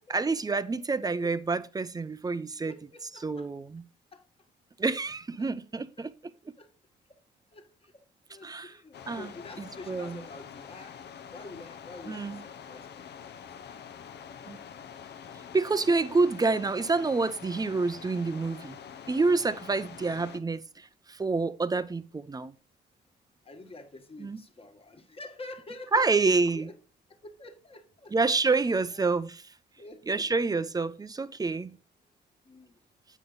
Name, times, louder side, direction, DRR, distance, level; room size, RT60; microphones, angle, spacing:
voice 1, 0.1-2.7 3.2-3.8 4.8-6.1 8.4-8.7 9.1-9.3 9.9-10.2 12.1-12.4 14.5-14.6 15.5-18.8 19.1-22.5 24.2-24.4 25.9-26.7 28.1-29.4 30.1-31.8, right 3 dB, 20° right, 0.5 m, -28 dB
voice 2, 2.6-3.5 4.1-4.3 4.9-5.0 6.6-6.7 7.5-7.9 8.3-11.0 11.3-13.0 13.4-13.7 16.0-16.1 20.0-20.1 23.4-26.7 27.1-28.1 28.9-29.0 29.8-30.7 32.4-32.7, left 2 dB, 30° left, 1.5 m, -47 dB
sound 1, 8.9-20.4, left 7 dB, 60° left, 0.7 m, -46 dB
8.3 x 5.5 x 3.9 m
cardioid pair, 90°, 20 cm